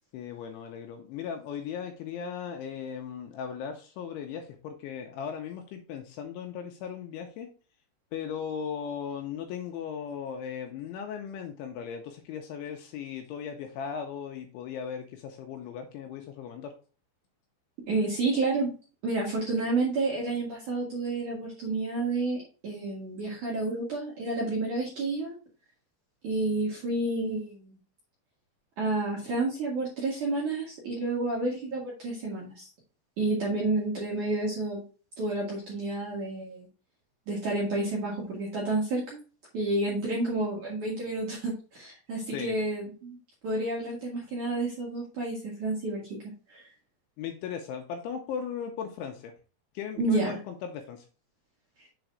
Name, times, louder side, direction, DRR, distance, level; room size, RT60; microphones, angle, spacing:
voice 1, 0.1-7.5 8.1-16.7 42.3-42.6 47.2-49.3 49.7-51.1, left 7 dB, 80° left, 4 dB, 2.9 m, -37 dB
voice 2, 17.9-18.7 19.0-25.4 26.2-27.8 28.8-32.7 33.2-34.8 35.2-36.7 37.3-39.2 39.5-43.2 43.4-46.2 46.5-46.7 50.0-50.3, right 2 dB, 60° right, -5 dB, 2.1 m, -30 dB
7.2 x 3.9 x 4.6 m, 0.35 s
omnidirectional pair, 6.0 m